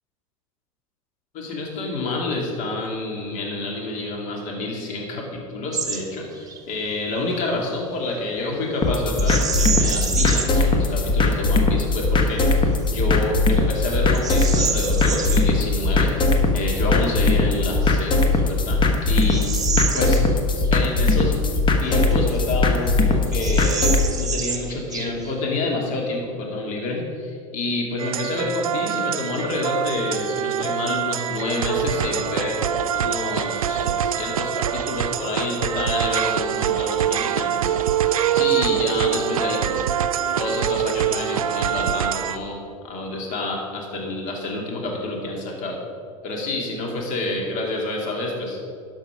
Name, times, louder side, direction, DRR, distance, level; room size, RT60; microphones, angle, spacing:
voice 1, 1.3-19.6 19.9-20.2 20.7-21.5 21.8-39.8 40.4-42.6 42.8-45.8 46.2-48.6, left 2 dB, 45° left, -1 dB, 2.6 m, -28 dB
Bird vocalization bird call bird song, 5.7-6.0 6.3-6.6 9.1-10.6 11.2-11.3 11.9-12.3 12.9-13.0 13.5-15.4 17.5-17.6 18.3-20.7 21.1-21.2 21.8-22.6 22.9-23.0 23.3-25.4, right 6 dB, 20° right, 1.1 m, -28 dB
sound 1, 8.8-24.1, left 3 dB, 25° left, 1.2 m, -20 dB
sound 2, 28.0-42.4, right 9 dB, 80° right, 0.4 m, -24 dB
12.0 x 6.1 x 5.0 m, 2.4 s
hypercardioid pair, 85°, 18 cm